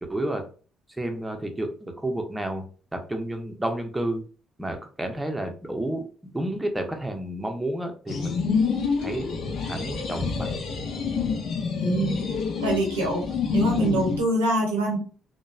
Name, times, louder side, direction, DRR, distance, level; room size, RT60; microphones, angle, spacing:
voice 1, 0.1-0.4 0.9-2.7 2.9-4.2 4.6-6.0 6.3-8.5 9.0-9.3 9.7-10.5, right 1 dB, 10° right, 4 dB, 0.7 m, -30 dB
sound 1, 8.1-14.2, left 5 dB, 60° left, 0.6 m, -27 dB
voice 2, 11.8-12.2 12.6-13.3 13.5-15.0, right 1 dB, 85° right, -1 dB, 0.7 m, -24 dB
2.9 x 2.2 x 2.4 m, 0.39 s
hypercardioid pair, 50°, 0 cm